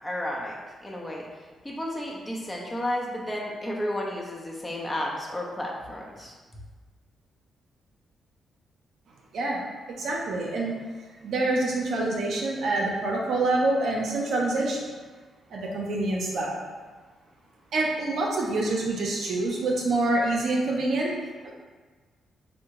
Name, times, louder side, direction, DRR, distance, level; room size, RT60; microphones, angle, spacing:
voice 1, 0.0-6.4, left 1 dB, 15° left, -2 dB, 0.7 m, -32 dB
voice 2, 10.0-10.7 11.2-14.8 15.5-16.6 17.7-21.1 21.4-21.5, right 2 dB, 70° right, -2 dB, 0.6 m, -26 dB
3.5 x 2.1 x 2.9 m, 1.4 s
supercardioid pair, 60°, 0 cm